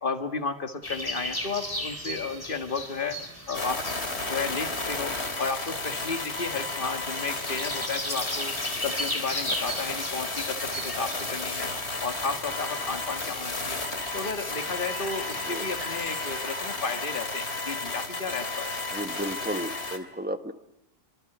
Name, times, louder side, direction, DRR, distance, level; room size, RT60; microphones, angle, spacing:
voice 1, 0.0-3.2 3.5-3.8 4.3-11.7 12.0-13.8 14.1-18.7, left 4 dB, 55° left, 6 dB, 2.0 m, -33 dB
sound 1, 0.8-16.4, equal, 20° left, 4.1 m, -38 dB
sound 2, 3.5-20.0, left 2 dB, 90° left, 3.4 m, -33 dB
voice 2, 18.9-20.5, right 1 dB, 10° right, 7 dB, 1.7 m, -33 dB
28.0 x 25.5 x 8.0 m, 0.86 s
omnidirectional pair, 1.1 m